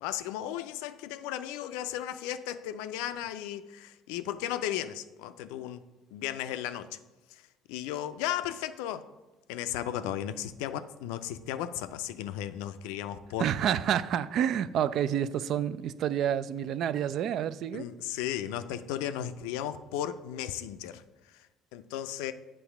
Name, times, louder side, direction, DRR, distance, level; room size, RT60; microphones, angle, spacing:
voice 1, 0.0-5.8 6.1-6.9 7.3-7.4 7.7-9.1 9.5-13.5 17.7-21.0 21.7-22.3, left 11 dB, 75° left, 0.4 m, -35 dB
voice 2, 13.4-17.9, right 9 dB, 60° right, 0.3 m, -29 dB
8.0 x 3.1 x 5.9 m
hypercardioid pair, 65°, 0 cm